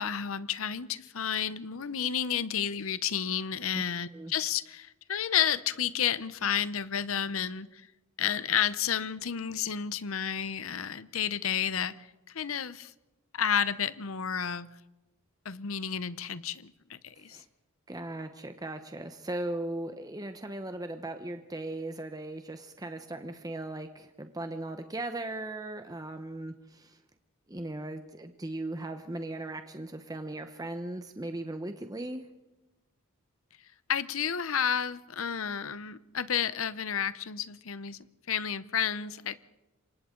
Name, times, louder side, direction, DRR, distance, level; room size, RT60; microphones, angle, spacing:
voice 1, 0.0-7.9 8.2-12.9 13.3-14.7 15.4-17.4 33.9-38.0 38.3-39.4, left 8 dB, 70° left, 15 dB, 0.8 m, -31 dB
voice 2, 17.9-27.0 27.5-32.2, right 2 dB, 20° right, 7 dB, 0.9 m, -38 dB
27.5 x 25.0 x 3.9 m, 1.0 s
head